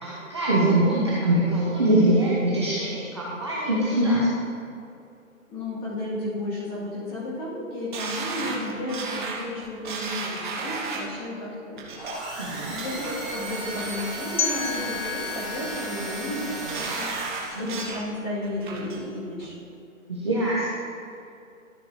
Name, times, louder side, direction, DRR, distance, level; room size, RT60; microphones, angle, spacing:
voice 1, 0.0-4.3 12.4-12.7 17.5-17.7 20.2-20.7, right 1 dB, 20° right, -7 dB, 0.6 m, -23 dB
voice 2, 5.5-12.0 12.7-17.1 17.6-19.5, left 1 dB, 20° left, -8 dB, 2.1 m, -33 dB
sound 1, 7.9-11.2 11.8-12.1 12.5-13.1 13.5-14.1 14.5-15.1 15.5-16.0 16.4-18.0 18.4-19.0 19.4-19.5, right 4 dB, 35° right, 1.1 m, -34 dB
sound 2, 11.9-17.7, right 1 dB, ahead, 1.3 m, -35 dB
sound 3, 14.4-17.3, left 6 dB, 35° left, 0.7 m, -33 dB
12.5 x 6.4 x 2.8 m, 2.6 s
hypercardioid pair, 170°, 40 cm